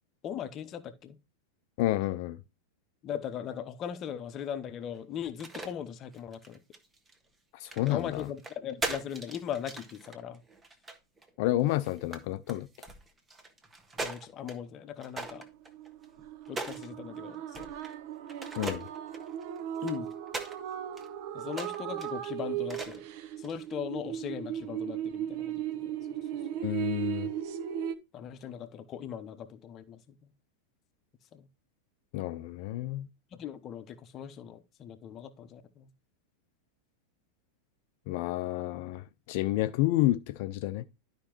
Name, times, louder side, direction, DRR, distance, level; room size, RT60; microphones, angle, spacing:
voice 1, 0.2-1.2 3.0-6.6 7.9-10.4 14.0-15.4 16.5-17.7 19.8-20.1 21.3-23.0 23.4-26.0 28.1-30.3 31.3-31.5 33.3-35.9, left 9 dB, 30° left, 0.9 m, -39 dB
voice 2, 1.8-2.4 7.5-8.3 11.4-12.7 18.6-18.8 26.6-27.3 32.1-33.1 38.1-40.8, left 16 dB, 50° left, 0.4 m, -30 dB
sound 1, 5.2-5.7 6.1-7.1 7.6-11.3 11.7-12.2 12.5-14.6 15.0-16.9 17.5-17.9 18.3-20.6 21.0-21.1 21.5-22.1 22.7-23.1 23.4-23.7, right 2 dB, 15° right, 1.3 m, -40 dB
sound 2, 15.2-27.9, right 11 dB, 50° right, 0.8 m, -37 dB
11.5 x 5.2 x 3.0 m
figure-of-eight pair, 90°, 0 cm